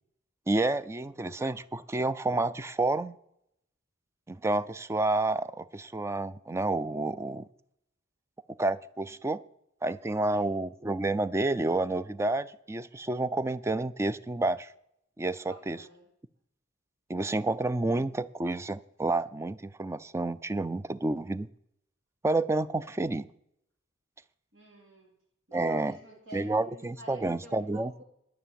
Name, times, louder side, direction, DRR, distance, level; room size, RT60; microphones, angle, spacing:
voice 1, 0.5-3.2 4.3-7.5 8.6-9.4 9.8-14.7 15.2-15.8 17.1-21.5 22.2-23.3 25.5-25.9 26.3-28.0, right 2 dB, 15° right, 0.4 m, -29 dB
voice 2, 10.2-10.6 15.5-16.1 24.5-25.1 25.5-28.0, equal, 70° right, 3.9 m, -50 dB
10.5 x 9.7 x 7.5 m
head